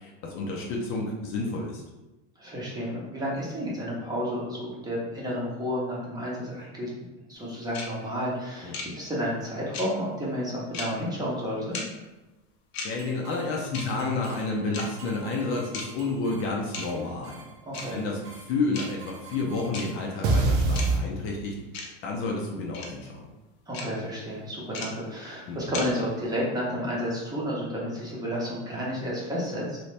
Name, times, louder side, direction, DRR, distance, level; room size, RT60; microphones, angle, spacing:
voice 1, 0.0-1.8 8.6-8.7 12.8-17.4 17.9-23.3 25.5-25.6, left 3 dB, 40° left, -1 dB, 0.6 m, -30 dB
voice 2, 2.4-6.9 7.3-11.8 17.6-18.0 23.7-29.8, equal, 10° right, -5 dB, 0.8 m, -31 dB
sound 1, 7.7-7.9 8.7-8.9 9.7-9.9 10.7-10.9 11.7-11.9 12.7-12.9 13.7-13.9 14.7-14.8 15.7-15.9 16.7-16.9 17.7-17.9 18.7-18.9 19.7-19.9 20.7-20.9 21.7-21.9 22.7-22.9 23.7-23.9 24.7-24.9 25.7-25.9, left 4 dB, 90° left, 0.8 m, -34 dB
sound 2, 12.9-13.4 13.7-14.4 14.7-16.4 16.7-17.4 17.7-18.4 18.7-21.0, right 3 dB, 60° right, 0.6 m, -30 dB
3.1 x 2.8 x 3.2 m, 1.1 s
supercardioid pair, 145°, 31 cm